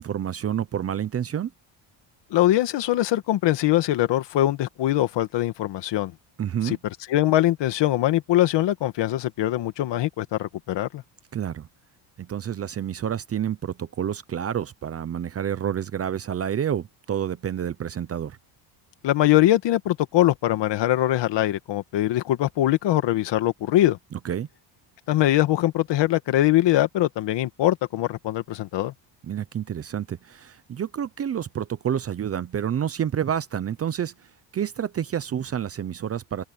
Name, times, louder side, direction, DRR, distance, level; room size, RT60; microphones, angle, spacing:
voice 1, 0.0-1.5 6.4-6.8 11.3-11.7 12.2-18.4 24.1-24.5 29.3-36.4, right 9 dB, 30° right, 0.7 m, -29 dB
voice 2, 2.3-6.1 6.6-6.8 7.1-11.0 19.0-24.0 25.1-28.9, left 14 dB, 55° left, 1.8 m, -22 dB
open air
cardioid pair, 150°, 50 cm